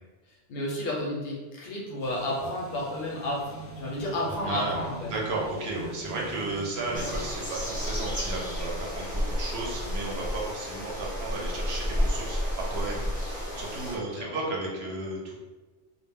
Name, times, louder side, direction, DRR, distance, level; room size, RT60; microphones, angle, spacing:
voice 1, 0.5-5.1 14.2-14.4, left 1 dB, 65° left, -3 dB, 0.8 m, -32 dB
sound 1, 2.0-7.1, right 3 dB, 20° left, 0.3 m, -44 dB
voice 2, 4.5-13.2 13.6-15.3, right 2 dB, 65° right, -2 dB, 0.8 m, -34 dB
sound 2, 6.9-14.0, equal, 10° right, 0.7 m, -31 dB
2.1 x 2.1 x 3.4 m, 1.2 s
omnidirectional pair, 1.2 m